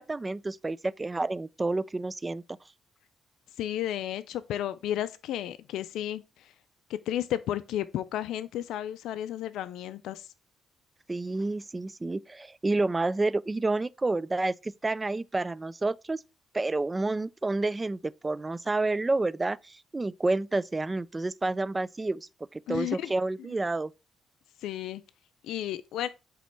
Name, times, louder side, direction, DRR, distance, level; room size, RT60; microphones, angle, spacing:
voice 1, 0.0-2.4 11.1-16.2 16.5-23.9, right 2 dB, 20° right, 0.3 m, -29 dB
voice 2, 3.6-6.5 6.9-10.3 22.7-23.1 23.4-23.5 24.6-25.0 25.4-26.1, left 12 dB, 85° left, 0.4 m, -33 dB
8.3 x 3.1 x 4.5 m
cardioid pair, 90°, 0 cm